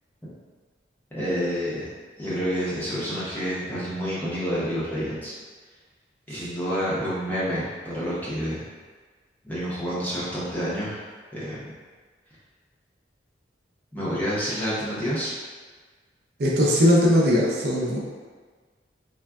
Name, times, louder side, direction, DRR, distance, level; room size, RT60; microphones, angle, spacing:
voice 1, 1.1-1.9 2.2-5.3 6.3-8.6 9.4-11.0 11.3-11.6 13.9-15.3, equal, 10° left, -10 dB, 0.6 m, -28 dB
voice 2, 16.4-18.0, equal, 55° right, -4 dB, 0.4 m, -19 dB
3.5 x 2.1 x 2.3 m, 1.5 s
head